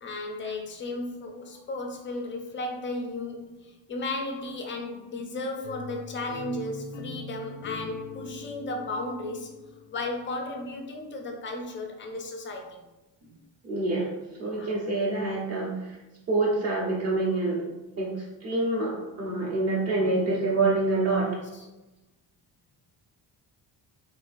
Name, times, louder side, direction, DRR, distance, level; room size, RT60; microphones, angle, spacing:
voice 1, 0.0-9.6 9.9-12.8 14.4-14.7 21.5-21.7, left 2 dB, 30° left, 3 dB, 0.4 m, -35 dB
sound 1, 5.6-10.5, left 3 dB, 90° left, 0.5 m, -41 dB
voice 2, 13.6-14.1 14.4-16.0 16.3-17.6 18.0-21.3, right 2 dB, 35° right, -5 dB, 1.1 m, -26 dB
3.7 x 2.6 x 2.5 m, 1.0 s
cardioid pair, 145°, 45 cm